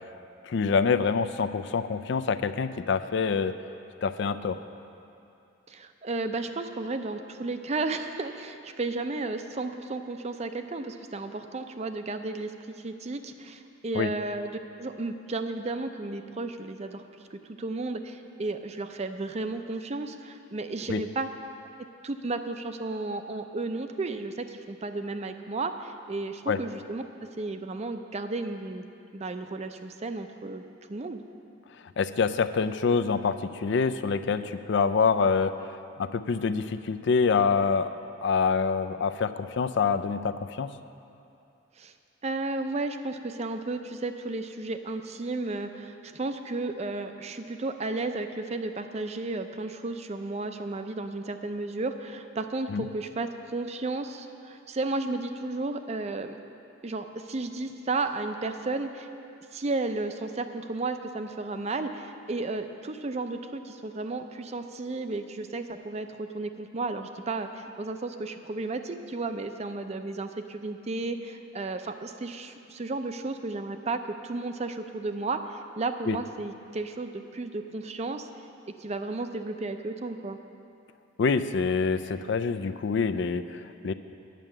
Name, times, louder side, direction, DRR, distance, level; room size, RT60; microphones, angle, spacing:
voice 1, 0.5-3.6 4.0-4.6 13.9-14.1 20.9-21.0 26.5-26.6 32.0-35.5 36.0-37.9 38.2-40.7 52.7-52.9 76.1-76.2 81.2-83.9, left 5 dB, 60° left, 12 dB, 0.4 m, -26 dB
voice 2, 5.7-17.0 17.3-21.3 22.0-27.0 27.4-28.9 29.1-30.6 30.9-31.2 41.8-41.9 42.2-56.4 56.8-59.1 59.5-78.3 78.8-80.4, right 3 dB, 35° right, 8 dB, 0.5 m, -33 dB
9.1 x 6.5 x 8.7 m, 2.6 s
head